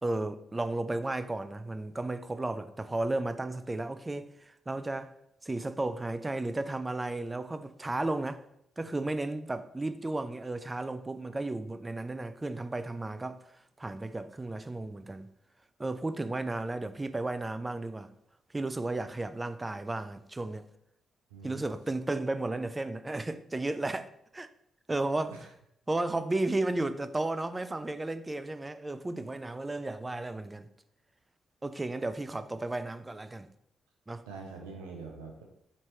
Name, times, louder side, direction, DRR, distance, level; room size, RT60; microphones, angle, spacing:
voice 1, 0.0-5.1 5.4-8.4 8.8-15.3 15.8-18.1 18.5-20.7 21.4-24.5 24.9-25.3 25.9-30.7 31.6-33.5 34.1-34.2, right 2 dB, 25° right, 0.3 m, -34 dB
voice 2, 21.3-21.7 25.3-25.5 34.3-35.4, right 4 dB, 85° right, 0.5 m, -44 dB
4.2 x 3.1 x 3.0 m
hypercardioid pair, 40°, 0 cm